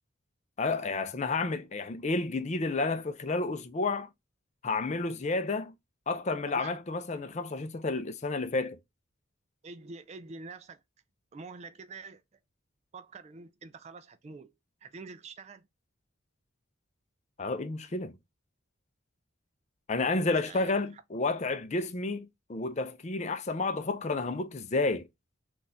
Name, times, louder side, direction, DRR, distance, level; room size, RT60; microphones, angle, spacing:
voice 1, 0.6-4.1 4.6-5.7 6.1-8.8 17.4-18.2 19.9-25.1, left 3 dB, 35° left, 0.5 m, -31 dB
voice 2, 6.5-6.8 9.6-10.8 11.3-12.4 12.9-14.5 14.8-15.7 20.4-21.0, right 4 dB, 35° right, 0.3 m, -46 dB
4.0 x 2.4 x 2.7 m
head